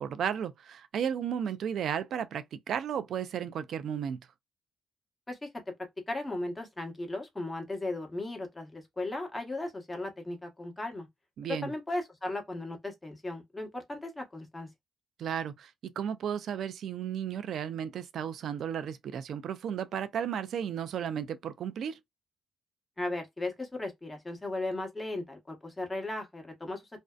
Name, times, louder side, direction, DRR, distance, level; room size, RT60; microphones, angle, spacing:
voice 1, 0.0-4.2 11.4-11.7 15.2-22.0, right 8 dB, 70° right, 0.4 m, -34 dB
voice 2, 6.1-11.1 11.6-14.7 23.0-26.8, left 2 dB, 15° left, 1.0 m, -36 dB
2.6 x 2.0 x 2.3 m
cardioid pair, 85°, 0 cm